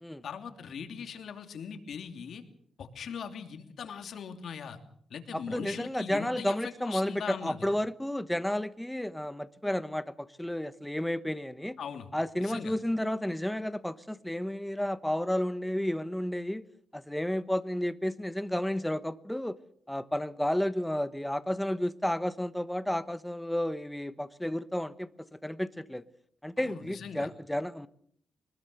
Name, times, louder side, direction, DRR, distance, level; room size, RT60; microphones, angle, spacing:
voice 1, 0.2-2.4 2.8-4.8 5.1-7.7 11.8-12.1 12.4-12.7 26.6-27.3, left 7 dB, 70° left, 2.9 m, -40 dB
voice 2, 5.3-11.8 12.1-16.6 16.9-19.6 19.9-26.0 26.4-27.9, left 1 dB, 5° left, 1.1 m, -32 dB
24.0 x 21.0 x 6.9 m
cardioid pair, 120°, 0 cm